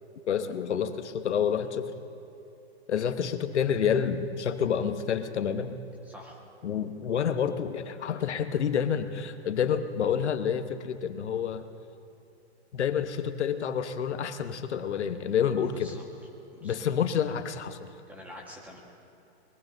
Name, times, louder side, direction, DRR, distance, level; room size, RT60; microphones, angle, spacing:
voice 1, 0.3-1.9 2.9-5.8 6.6-11.6 12.7-15.9 16.6-17.9, left 8 dB, 85° left, 9 dB, 1.1 m, -28 dB
voice 2, 6.0-6.4 15.6-16.0 16.5-16.9 18.1-18.8, left 1 dB, 5° right, -1 dB, 1.3 m, -47 dB
24.5 x 22.0 x 2.6 m, 2.9 s
hypercardioid pair, 160°, 34 cm